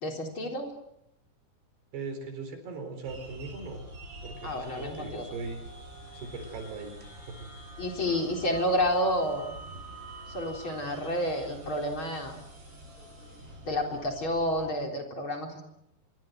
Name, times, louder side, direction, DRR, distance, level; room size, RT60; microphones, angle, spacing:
voice 1, 0.0-0.7 4.4-5.3 7.8-9.5 10.3-12.4 13.6-15.7, left 1 dB, 30° left, 2 dB, 4.4 m, -30 dB
voice 2, 1.9-3.8 4.2-5.6 6.1-7.5, right 4 dB, 90° right, 7 dB, 6.3 m, -39 dB
sound 1, 3.0-14.7, right 1 dB, 30° right, 8.3 m, -46 dB
26.0 x 23.5 x 7.9 m, 0.80 s
omnidirectional pair, 4.6 m